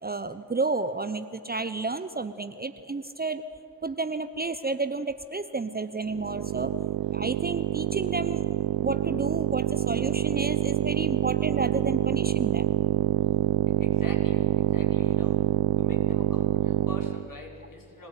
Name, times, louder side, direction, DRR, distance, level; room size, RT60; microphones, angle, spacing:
voice 1, 0.0-3.4 3.8-6.7 7.1-8.4 8.8-12.7, right 3 dB, 20° right, 11 dB, 1.0 m, -31 dB
sound 1, 6.0-17.3, right 14 dB, 60° right, 0.9 m, -26 dB
voice 2, 13.8-15.4 15.8-18.1, left 2 dB, 45° left, 0 dB, 5.9 m, -45 dB
25.5 x 17.5 x 9.2 m, 2.5 s
hypercardioid pair, 45°, 46 cm